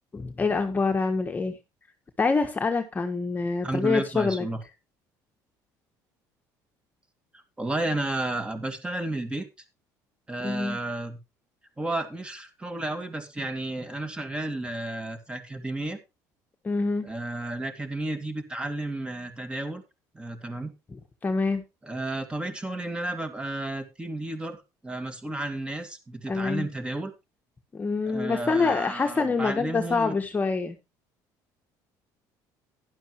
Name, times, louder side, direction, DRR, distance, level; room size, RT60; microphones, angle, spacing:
voice 1, 0.1-1.6 2.2-4.5 10.4-10.8 16.6-17.1 21.2-21.6 26.3-26.7 27.7-30.8, left 4 dB, 20° left, 5 dB, 1.3 m, -26 dB
voice 2, 3.6-4.6 7.3-9.5 10.3-11.2 11.8-16.0 17.0-19.8 20.1-20.7 21.8-27.1 28.1-30.2, right 2 dB, 15° right, 7 dB, 2.1 m, -32 dB
11.5 x 11.0 x 3.1 m, 0.26 s
cardioid pair, 120°, 8 cm